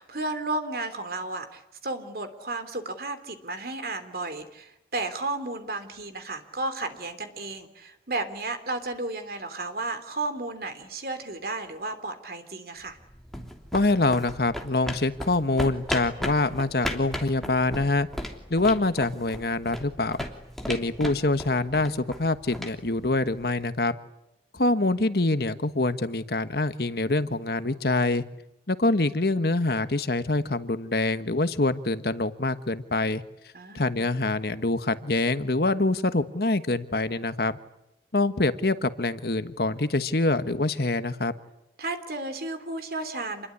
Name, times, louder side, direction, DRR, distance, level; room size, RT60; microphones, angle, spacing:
voice 1, 0.0-13.0 20.7-20.8 33.5-34.1 41.8-43.5, right 2 dB, 55° right, 9 dB, 3.4 m, -33 dB
sound 1, 12.9-23.7, left 1 dB, ahead, 3.1 m, -37 dB
voice 2, 13.7-18.1 18.5-20.2 20.7-24.0 24.5-28.2 28.7-33.2 33.7-37.6 38.1-41.3, left 2 dB, 60° left, 11 dB, 1.3 m, -25 dB
27.5 x 21.5 x 10.0 m, 0.82 s
head